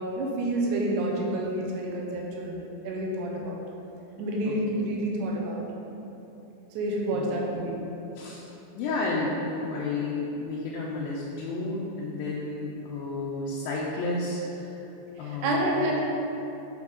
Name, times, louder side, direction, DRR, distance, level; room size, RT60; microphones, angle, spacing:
voice 1, 0.0-3.6 4.2-5.6 6.7-7.8 15.1-16.0, right 1 dB, 75° right, -2 dB, 1.9 m, -29 dB
voice 2, 4.5-4.9 7.1-7.6 8.2-8.4 8.8-14.8 15.2-15.9, left 2 dB, 80° left, -4 dB, 2.3 m, -32 dB
6.6 x 5.1 x 3.6 m, 3.0 s
omnidirectional pair, 4.4 m